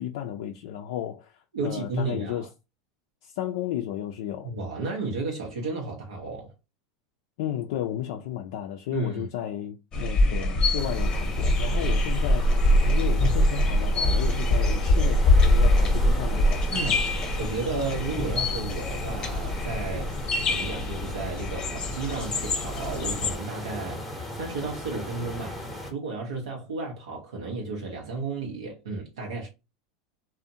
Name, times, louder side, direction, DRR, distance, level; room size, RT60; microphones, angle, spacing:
voice 1, 0.0-2.5 3.2-4.5 7.4-16.7, left 11 dB, 70° left, 0.3 m, -33 dB
voice 2, 1.5-2.5 4.4-6.5 8.9-9.3 16.7-17.0 17.4-24.0 24.3-29.5, right 3 dB, 90° right, 0.6 m, -33 dB
sound 1, 9.9-23.4, left 1 dB, 30° left, 0.7 m, -24 dB
sound 2, 10.8-25.9, left 1 dB, ahead, 0.7 m, -38 dB
2.5 x 2.1 x 2.6 m
hypercardioid pair, 110°, 3 cm